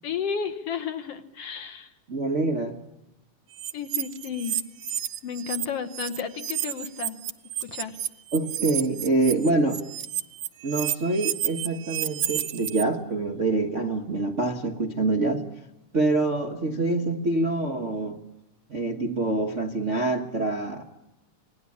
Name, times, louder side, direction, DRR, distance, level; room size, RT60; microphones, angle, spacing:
voice 1, 0.0-1.9 3.7-4.6 5.2-7.2 7.6-8.0, left 7 dB, 60° left, 9 dB, 1.9 m, -32 dB
voice 2, 2.1-2.8 8.3-9.8 10.6-15.4 15.9-18.2 18.7-20.8, right 2 dB, 45° right, 4 dB, 0.9 m, -25 dB
sound 1, 3.6-5.7 5.9-12.8, right 12 dB, 65° right, 2.0 m, -31 dB
28.0 x 20.5 x 8.6 m, 0.94 s
omnidirectional pair, 3.6 m